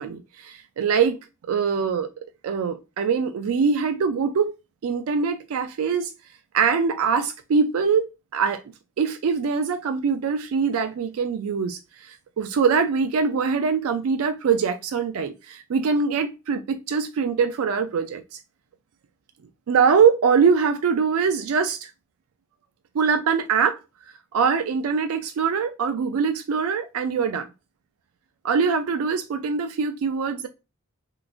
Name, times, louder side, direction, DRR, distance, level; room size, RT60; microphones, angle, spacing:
voice 1, 0.0-1.2 1.5-2.1 2.4-4.5 4.8-6.1 6.5-8.0 8.3-8.6 9.0-18.2 19.7-21.9 22.9-23.8 24.3-27.5 28.4-30.5, right 5 dB, 85° right, 0.4 m, -23 dB
3.8 x 2.4 x 2.3 m
head